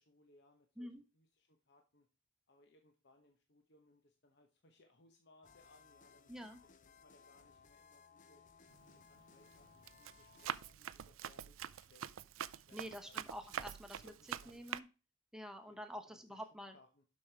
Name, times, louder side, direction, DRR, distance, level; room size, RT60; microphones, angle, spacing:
voice 1, 0.0-2.1 2.5-6.3 6.8-8.4 8.8-12.1 12.5-13.2 14.0-14.7 15.6-16.5 16.7-17.0, left 2 dB, 55° left, 4 dB, 1.0 m, -68 dB
sound 1, 5.4-10.7, left 5 dB, 40° left, 0.6 m, -63 dB
voice 2, 6.3-6.6 12.5-14.1 14.5-14.9 15.3-16.7, equal, 5° right, 6 dB, 1.0 m, -48 dB
Run, 8.7-9.0 9.5-14.8, right 9 dB, 80° right, 0.4 m, -45 dB
7.1 x 6.3 x 4.6 m, 0.32 s
head